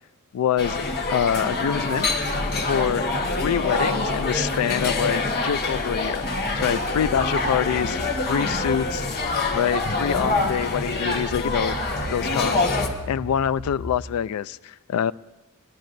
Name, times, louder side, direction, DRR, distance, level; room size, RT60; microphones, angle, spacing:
voice 1, 0.3-0.8 1.1-2.1 2.7-3.1 3.4-8.0 8.3-9.1 9.5-11.8 12.1-15.1, left 9 dB, 75° left, 15 dB, 0.3 m, -25 dB
sound 1, 0.6-12.9, left 2 dB, 45° left, 1.2 m, -25 dB
sound 2, 6.4-14.0, right 1 dB, 60° right, 4.8 m, -39 dB
Wind instrument woodwind instrument, 6.6-10.1, left 8 dB, 10° right, 4.3 m, -41 dB
21.0 x 11.5 x 2.6 m, 1.1 s
head